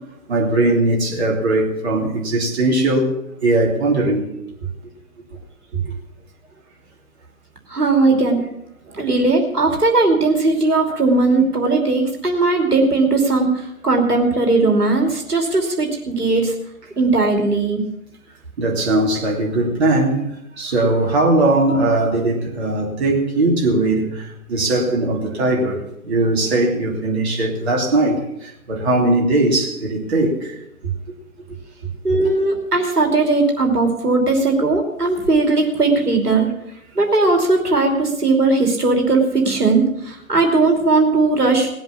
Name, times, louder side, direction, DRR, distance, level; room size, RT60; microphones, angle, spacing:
voice 1, 0.3-3.1 3.4-4.3 5.7-5.9 8.9-9.0 18.6-20.2 20.6-25.8 26.0-30.5 32.1-32.3, right 2 dB, 45° right, 3.2 m, -19 dB
voice 2, 7.7-8.4 8.9-16.5 17.0-17.8 32.0-36.5 36.9-41.7, right 3 dB, 80° right, 2.9 m, -18 dB
18.0 x 7.9 x 7.0 m
figure-of-eight pair, 140°, 45 cm